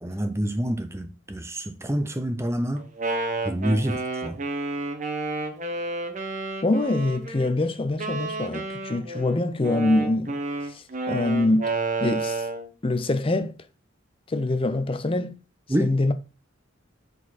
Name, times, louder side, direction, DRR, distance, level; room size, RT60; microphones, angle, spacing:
voice 1, 0.0-2.9 3.4-4.4 15.7-15.9, right 1 dB, 15° right, 0.7 m, -27 dB
Wind instrument woodwind instrument, 2.8-7.5 8.0-12.7, right 3 dB, 35° right, 1.1 m, -30 dB
voice 2, 6.6-10.4 10.7-11.7 12.0-12.4 12.8-13.5 14.3-15.4 15.8-16.1, left 2 dB, 25° left, 0.5 m, -24 dB
7.1 x 4.2 x 4.2 m
head